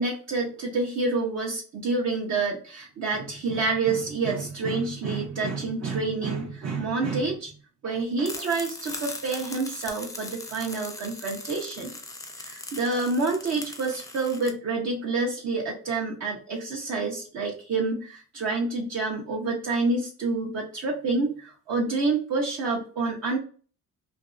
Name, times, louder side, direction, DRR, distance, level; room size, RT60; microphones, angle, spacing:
voice 1, 0.0-7.5 7.8-11.9 12.4-23.4, right 3 dB, 60° right, -2 dB, 0.7 m, -28 dB
sound 1, 8.2-14.5, left 2 dB, 10° left, 0.5 m, -40 dB
2.5 x 2.3 x 2.4 m, 0.39 s
cardioid pair, 90°, 30 cm